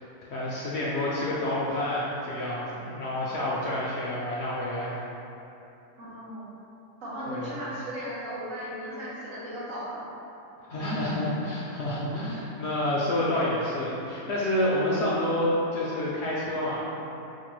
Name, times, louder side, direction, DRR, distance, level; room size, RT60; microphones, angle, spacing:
voice 1, 0.3-5.0 7.3-7.5 10.7-16.8, left 1 dB, 65° left, -6 dB, 0.7 m, -28 dB
voice 2, 6.0-6.5 7.0-10.1, equal, 70° right, -8 dB, 1.2 m, -36 dB
5.0 x 2.2 x 3.0 m, 2.9 s
omnidirectional pair, 1.5 m